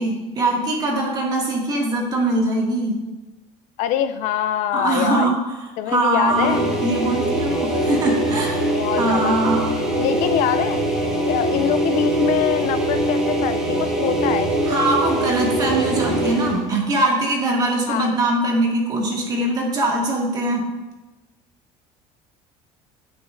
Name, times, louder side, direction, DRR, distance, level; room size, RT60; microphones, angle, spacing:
voice 1, 0.0-3.0 4.7-5.4 5.9-6.6 6.8-8.7 9.0-9.6 14.6-20.6, right 2 dB, 30° right, -2 dB, 1.9 m, -22 dB
voice 2, 3.8-5.3 5.8-6.7 8.8-9.3 9.9-10.8 11.3-14.5 17.9-18.1, left 10 dB, 65° left, 12 dB, 0.4 m, -24 dB
sound 1, 6.2-16.7, right 1 dB, 5° right, 1.4 m, -22 dB
17.0 x 6.1 x 2.5 m, 1.1 s
cardioid pair, 160°, 14 cm